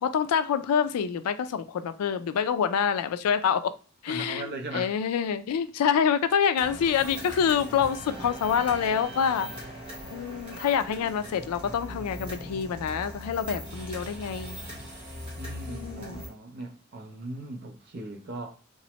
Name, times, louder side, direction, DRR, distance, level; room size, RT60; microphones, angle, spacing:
voice 1, 0.0-3.7 4.0-9.5 10.1-14.6 15.7-16.2, left 7 dB, 85° left, 0.3 m, -26 dB
voice 2, 4.1-4.9 8.1-8.2 15.4-18.5, right 2 dB, 45° right, 0.5 m, -39 dB
sound 1, 6.6-16.3, equal, 25° right, 0.9 m, -40 dB
3.0 x 2.0 x 2.9 m
head